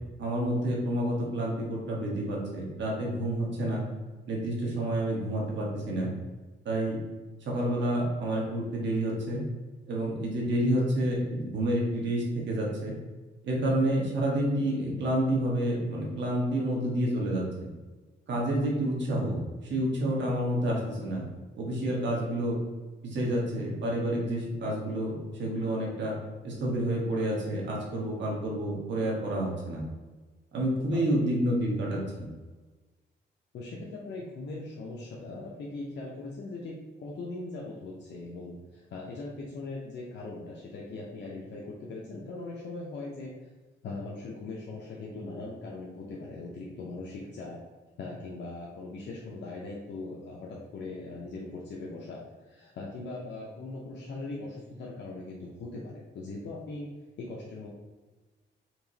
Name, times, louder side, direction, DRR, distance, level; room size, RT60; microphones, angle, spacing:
voice 1, 0.2-3.8 4.3-6.1 6.6-7.0 7.4-9.4 9.9-12.9 13.4-17.7 18.3-21.3 21.5-22.6 23.0-26.1 26.4-29.8 30.5-32.3, right 1 dB, 70° right, -3 dB, 1.3 m, -29 dB
voice 2, 33.5-43.3 43.8-47.7 48.0-57.7, left 2 dB, 65° left, -4 dB, 0.7 m, -40 dB
4.5 x 2.9 x 2.8 m, 1.3 s
cardioid pair, 120°, 19 cm